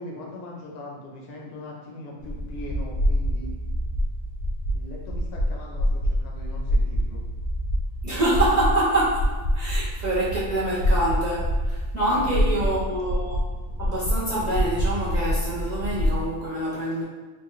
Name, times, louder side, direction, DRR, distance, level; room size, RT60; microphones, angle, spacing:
voice 1, 0.0-3.5 4.7-7.2 12.1-12.3 12.5-12.7, left 1 dB, 60° left, -2 dB, 0.8 m, -40 dB
sound 1, 2.2-16.2, equal, 80° left, 1.1 m, -26 dB
voice 2, 8.0-13.5 13.8-17.0, right 1 dB, 45° right, -9 dB, 0.6 m, -26 dB
4.1 x 2.2 x 3.0 m, 1.4 s
omnidirectional pair, 1.3 m